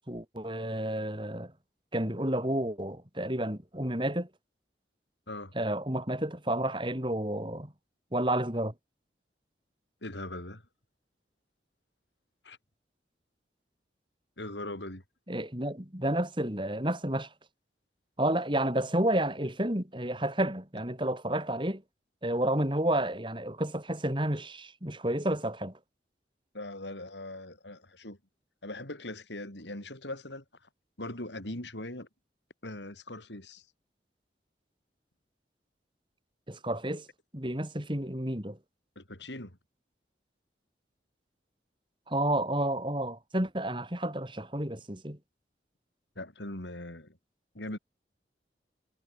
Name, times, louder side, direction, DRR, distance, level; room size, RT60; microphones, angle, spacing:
voice 1, 0.1-1.5 1.9-4.3 5.5-7.7 8.1-8.7 15.3-17.3 18.2-21.8 22.2-25.8 36.5-37.1 37.3-38.6 42.1-45.2, right 1 dB, 25° right, 4.1 m, -30 dB
voice 2, 10.0-10.6 12.4-12.6 14.4-15.0 26.5-28.2 28.6-30.4 31.0-32.1 32.6-33.7 39.0-39.6 46.2-47.2 47.5-47.8, left 1 dB, 85° left, 6.1 m, -40 dB
head